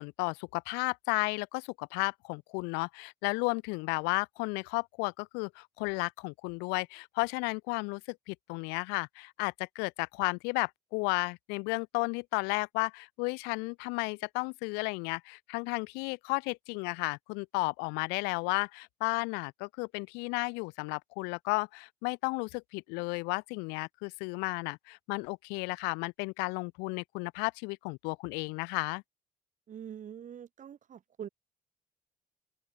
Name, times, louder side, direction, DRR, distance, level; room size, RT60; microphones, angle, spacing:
voice 1, 0.0-29.0, left 30 dB, 80° left, 0.4 m, -33 dB
voice 2, 29.7-31.3, right 9 dB, 50° right, 1.0 m, -44 dB
open air
hypercardioid pair, 50°, 17 cm